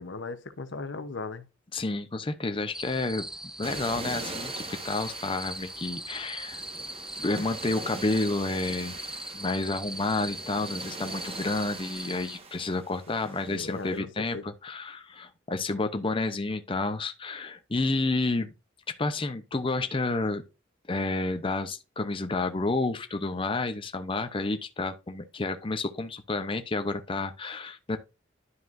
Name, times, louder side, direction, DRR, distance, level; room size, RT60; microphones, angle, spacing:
voice 1, 0.0-1.4 13.5-14.1 14.3-14.4, left 3 dB, 75° left, 0.9 m, -37 dB
voice 2, 1.7-3.3 3.6-6.6 7.2-8.9 9.3-18.5 18.9-20.4 20.9-28.0, left 2 dB, 30° left, 0.7 m, -30 dB
sound 1, 2.7-12.4, right 1 dB, 5° right, 0.3 m, -40 dB
sound 2, 3.6-14.0, right 2 dB, 35° right, 1.4 m, -42 dB
11.5 x 5.1 x 2.6 m
head